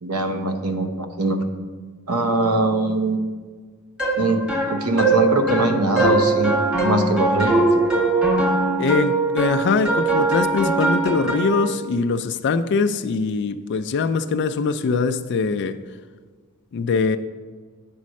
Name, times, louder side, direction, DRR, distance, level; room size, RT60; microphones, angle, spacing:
voice 1, 0.0-1.5 2.1-3.2 4.1-7.7, right 2 dB, 80° right, 0.9 m, -22 dB
sound 1, 4.0-11.7, right 3 dB, 5° right, 1.5 m, -21 dB
voice 2, 8.8-15.8 16.7-17.2, left 4 dB, 50° left, 0.3 m, -22 dB
9.4 x 4.2 x 6.3 m
head